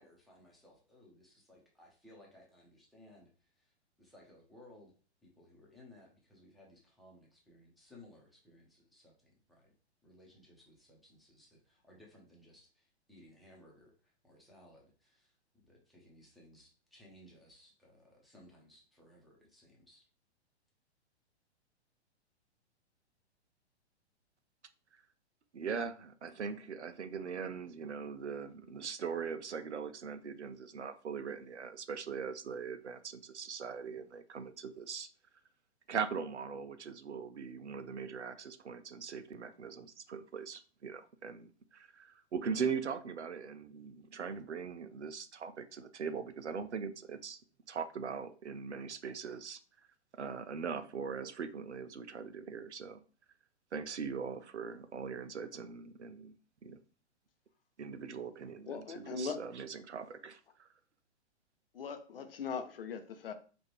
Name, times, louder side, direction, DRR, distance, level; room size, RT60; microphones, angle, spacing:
voice 1, 0.0-4.9 5.2-9.7 10.0-15.4 15.6-20.0, left 1 dB, ahead, 1.0 m, -60 dB
voice 2, 25.5-35.1 35.9-47.4 47.7-49.6 50.2-53.0 53.7-56.3 56.6-56.8 57.8-60.7, right 6 dB, 80° right, 0.5 m, -41 dB
voice 3, 58.7-59.4 61.7-63.3, left 5 dB, 55° left, 0.7 m, -40 dB
4.7 x 2.5 x 3.2 m
figure-of-eight pair, 110°, 34 cm